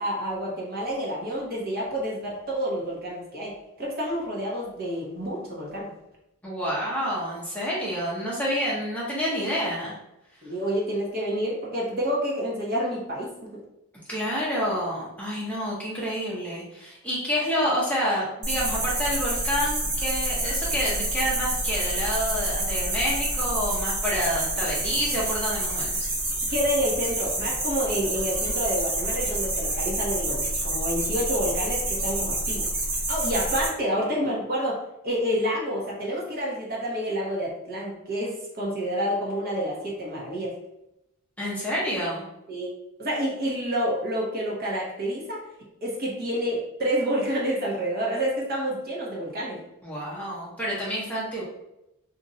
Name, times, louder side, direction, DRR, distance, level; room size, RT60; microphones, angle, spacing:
voice 1, 0.0-5.9 10.4-13.5 26.5-32.7 33.1-34.8 35.0-40.5 42.5-42.7 43.0-45.4 45.8-49.6, equal, 45° right, -4 dB, 0.8 m, -28 dB
voice 2, 6.4-9.9 14.1-26.0 41.4-42.3 49.8-51.4, equal, 5° left, -6 dB, 0.7 m, -28 dB
sound 1, 18.4-33.7, right 1 dB, 70° right, 1.2 m, -28 dB
2.5 x 2.2 x 3.8 m, 0.87 s
head